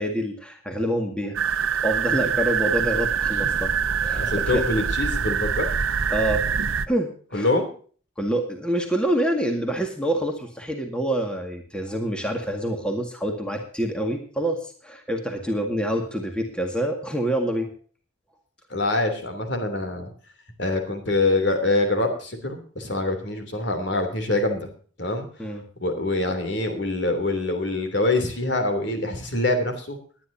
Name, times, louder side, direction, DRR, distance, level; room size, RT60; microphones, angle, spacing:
voice 1, 0.0-1.4 1.8-3.7 4.0-4.6 6.1-6.4 6.9-7.5 8.2-17.7 25.4-25.6, right 1 dB, 5° left, 3 dB, 1.9 m, -26 dB
sound 1, 1.3-6.8, right 7 dB, 80° right, 0.9 m, -24 dB
voice 2, 4.1-5.6 7.3-7.7 18.7-20.1 20.6-24.7 25.0-25.3 25.8-30.0, left 2 dB, 60° left, 6 dB, 3.1 m, -25 dB
20.5 x 10.5 x 2.8 m, 0.42 s
head